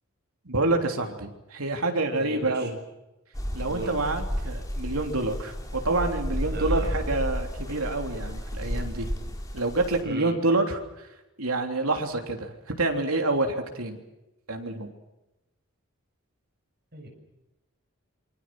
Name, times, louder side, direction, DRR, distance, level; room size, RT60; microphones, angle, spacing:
voice 1, 0.5-2.8 3.5-9.1 9.5-11.1 11.4-14.0 14.5-14.9, right 2 dB, 85° right, 4 dB, 3.5 m, -27 dB
voice 2, 2.1-2.7 3.6-3.9 6.4-7.0 10.0-10.4 16.9-17.1, right 2 dB, 50° right, 2 dB, 7.2 m, -38 dB
sound 1, 3.3-10.0, equal, 15° left, 3.3 m, -32 dB
27.5 x 24.5 x 6.3 m, 0.99 s
head